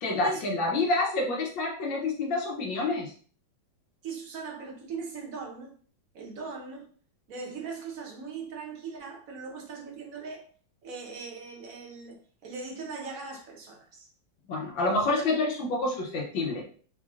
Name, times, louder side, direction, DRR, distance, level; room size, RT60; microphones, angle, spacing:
voice 1, 0.0-3.1 14.5-16.6, left 2 dB, 75° left, -1 dB, 1.5 m, -28 dB
voice 2, 4.0-5.8 6.1-6.9 7.3-10.5 10.8-14.1 15.2-15.3 15.6-15.7, right 4 dB, 55° right, 0 dB, 1.1 m, -40 dB
4.1 x 3.1 x 2.4 m, 0.43 s
omnidirectional pair, 2.1 m